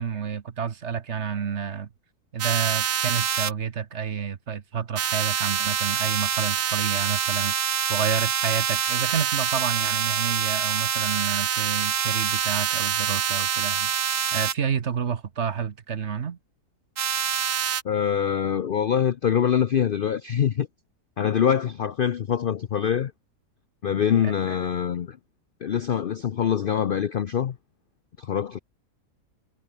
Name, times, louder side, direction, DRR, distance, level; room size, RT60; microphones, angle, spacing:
voice 1, 0.0-1.9 2.3-13.9 14.3-16.4 24.2-24.3, right 7 dB, 50° right, 1.2 m, -29 dB
sound 1, 2.4-3.5 5.0-14.5 17.0-17.8, right 9 dB, 70° right, 1.7 m, -25 dB
voice 2, 17.8-20.7 21.2-23.1 23.8-25.2 25.6-27.6 28.2-28.6, left 8 dB, 85° left, 0.4 m, -24 dB
omnidirectional pair, 1.7 m